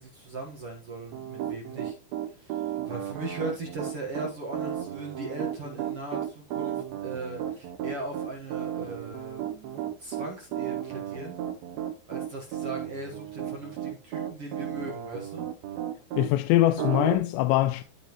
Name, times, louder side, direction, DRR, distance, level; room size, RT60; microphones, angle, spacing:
voice 1, 0.0-2.0 2.2-11.4 12.1-15.4, right 2 dB, 90° right, 1.3 m, -39 dB
Piano, 1.1-16.3 16.8-17.2, right 10 dB, 70° right, 2.4 m, -34 dB
voice 2, 16.2-17.8, left 15 dB, 85° left, 2.7 m, -23 dB
14.5 x 5.4 x 3.0 m
omnidirectional pair, 5.1 m